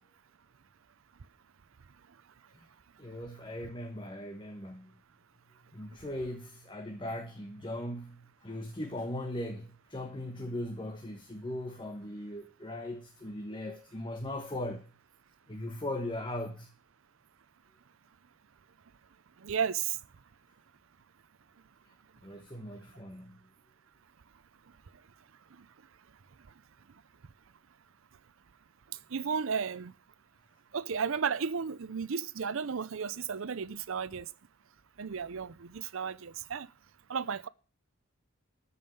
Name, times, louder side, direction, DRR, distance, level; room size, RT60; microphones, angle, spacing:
voice 1, 3.0-5.0 5.7-14.9 15.5-16.7 22.2-23.4, left 1 dB, 25° left, 1.2 m, -39 dB
voice 2, 19.4-20.0 29.1-29.9 30.7-34.3 35.0-36.7 37.1-37.5, right 6 dB, 70° right, 0.6 m, -33 dB
13.5 x 5.5 x 7.8 m
head